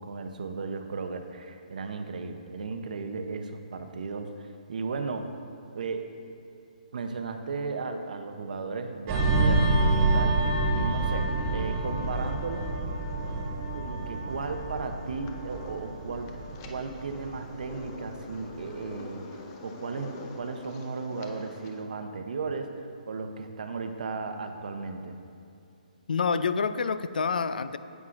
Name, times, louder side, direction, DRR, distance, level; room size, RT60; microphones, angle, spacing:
voice 1, 0.0-5.3 5.7-6.1 6.9-12.7 13.1-13.2 13.7-16.3 16.7-19.3 19.6-25.2, right 4 dB, 65° right, 7 dB, 0.7 m, -35 dB
sound 1, 9.1-18.1 18.5-18.7, right 2 dB, 25° right, 0.7 m, -28 dB
sound 2, 9.9-21.8, left 4 dB, 30° left, 0.6 m, -46 dB
voice 2, 26.1-27.8, left 5 dB, 80° left, 13 dB, 0.4 m, -27 dB
9.6 x 8.1 x 2.5 m, 2.5 s
hypercardioid pair, 160°, 5 cm